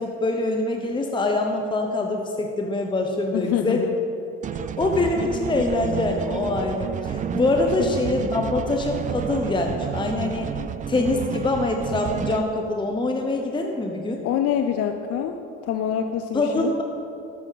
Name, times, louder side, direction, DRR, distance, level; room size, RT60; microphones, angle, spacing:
voice 1, 0.0-3.9 4.5-10.5 10.9-14.2 16.3-16.8, left 2 dB, 15° left, 3 dB, 0.9 m, -24 dB
voice 2, 3.3-3.9 7.8-7.9 14.2-15.4 15.6-16.8, left 9 dB, 55° left, 6 dB, 0.6 m, -25 dB
sound 1, 4.4-12.4, right 8 dB, 25° right, 0.4 m, -30 dB
13.0 x 7.2 x 4.1 m, 2.8 s
supercardioid pair, 80°, 30 cm